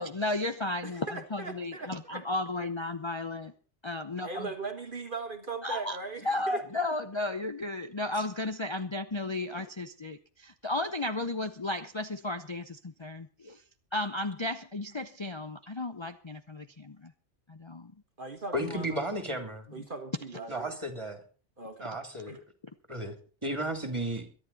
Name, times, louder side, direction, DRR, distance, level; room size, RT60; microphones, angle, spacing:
voice 1, 0.0-3.5 3.8-4.5 5.6-6.0 6.2-13.6 13.9-17.1 17.5-17.9 18.7-18.8, left 2 dB, 30° left, 9 dB, 0.7 m, -34 dB
voice 2, 0.8-2.2 4.2-6.6 18.2-18.9 19.7-20.8 21.6-21.9 22.3-22.4, right 4 dB, 45° right, 6 dB, 1.7 m, -39 dB
voice 3, 18.5-19.7 20.5-21.2 21.8-22.4 22.9-23.2 23.4-24.3, right 1 dB, 25° right, 6 dB, 3.2 m, -33 dB
23.0 x 11.0 x 4.2 m, 0.38 s
omnidirectional pair, 1.2 m